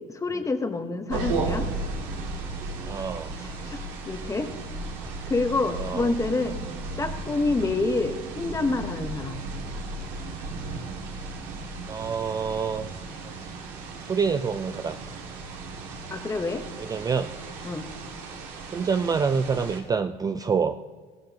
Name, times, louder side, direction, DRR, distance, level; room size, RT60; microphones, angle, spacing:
voice 1, 0.1-1.7 3.4-4.5 5.3-6.6 7.0-9.4 16.1-16.6 17.6-17.9, left 3 dB, 15° left, 7 dB, 1.1 m, -27 dB
sound 1, 1.1-19.8, right 3 dB, 85° right, 2.1 m, -35 dB
voice 2, 2.9-3.3 5.8-6.1 11.9-13.0 14.0-15.0 16.8-17.3 18.7-20.8, right 5 dB, 20° right, 9 dB, 0.4 m, -27 dB
15.5 x 13.0 x 2.9 m, 1.5 s
cardioid pair, 115°, 18 cm